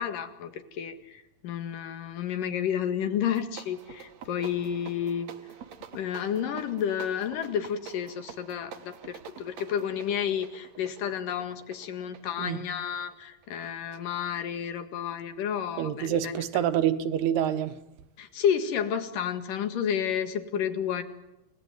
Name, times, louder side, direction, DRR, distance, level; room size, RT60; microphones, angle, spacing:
voice 1, 0.0-5.3 5.9-16.4 18.2-21.0, left 8 dB, 60° left, 3.2 m, -31 dB
sound 1, 3.2-13.6, right 8 dB, 55° right, 2.1 m, -47 dB
voice 2, 12.4-12.7 15.8-17.8, right 10 dB, 80° right, 3.3 m, -27 dB
29.0 x 18.5 x 9.4 m
omnidirectional pair, 4.6 m